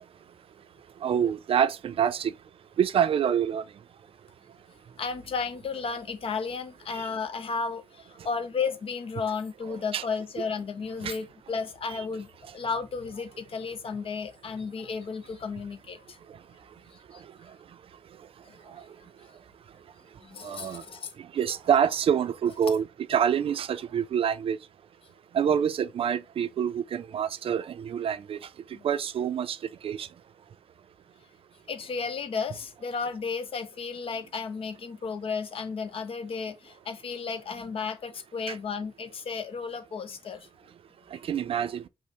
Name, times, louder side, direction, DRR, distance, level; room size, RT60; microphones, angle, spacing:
voice 1, 1.0-2.3 2.8-3.6 6.9-7.1 9.7-10.0 11.0-11.2 11.9-12.0 17.1-17.3 18.7-18.8 20.4-20.8 21.2-24.6 25.3-28.5 28.8-29.6 29.8-30.1 38.5-38.6 41.1-41.8, right 8 dB, 65° right, 0.4 m, -27 dB
voice 2, 5.0-12.3 12.5-16.0 20.2-21.1 28.7-28.8 31.7-40.4, left 5 dB, 65° left, 0.7 m, -33 dB
5.3 x 2.1 x 4.5 m
cardioid pair, 85°, 10 cm